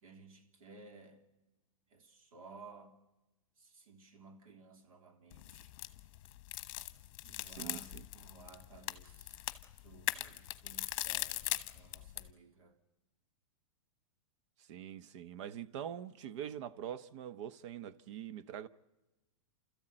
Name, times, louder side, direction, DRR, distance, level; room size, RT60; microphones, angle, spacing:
voice 1, 0.0-1.2 1.9-3.0 3.6-5.7 7.2-9.4 9.8-12.8, right 3 dB, 80° right, 3.1 m, -57 dB
sound 1, 5.3-12.3, left 16 dB, 45° left, 1.1 m, -41 dB
voice 2, 7.4-8.0 14.7-18.7, right 10 dB, 55° right, 1.0 m, -44 dB
29.5 x 14.0 x 8.9 m
hypercardioid pair, 140°, 18 cm